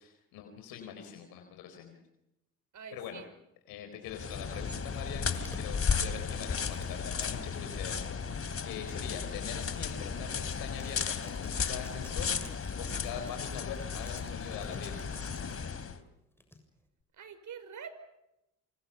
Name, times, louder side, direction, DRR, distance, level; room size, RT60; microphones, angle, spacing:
voice 1, 0.0-2.0 2.9-3.2 3.7-15.2, left 8 dB, 85° left, 5 dB, 4.3 m, -43 dB
voice 2, 2.7-3.3 17.1-17.9, right 7 dB, 60° right, 12 dB, 5.5 m, -45 dB
sound 1, 4.1-16.0, left 6 dB, 40° left, 3.2 m, -35 dB
sound 2, 5.1-7.3 8.1-15.6 16.4-16.9, left 1 dB, 5° left, 7.2 m, -55 dB
28.0 x 27.5 x 5.8 m, 0.89 s
supercardioid pair, 70°, 34 cm